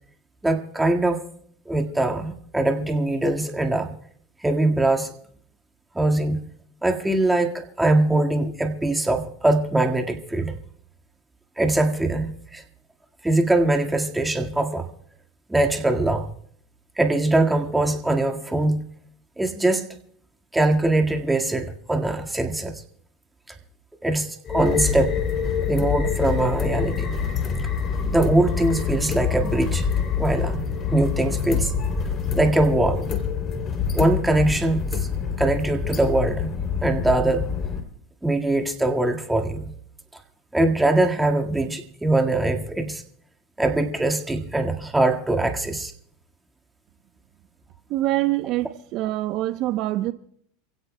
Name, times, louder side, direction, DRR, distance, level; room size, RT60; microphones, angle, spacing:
voice 1, 0.4-1.2 1.6-3.9 4.4-5.1 5.9-6.4 6.8-10.5 11.6-12.6 13.2-14.9 15.5-16.3 17.0-18.8 19.4-19.9 20.5-22.8 24.0-25.1 25.7-27.2 28.1-29.8 30.2-30.6 30.9-31.7 32.3-33.0 33.9-34.8 35.4-36.5 36.8-37.5 38.2-39.7 40.5-43.0 43.6-45.9, right 2 dB, 5° right, 1.8 m, -22 dB
sound 1, 24.5-37.8, left 6 dB, 35° left, 3.0 m, -26 dB
voice 2, 47.9-50.1, right 16 dB, 55° right, 0.8 m, -25 dB
28.5 x 16.5 x 2.2 m
supercardioid pair, 110°, 0 cm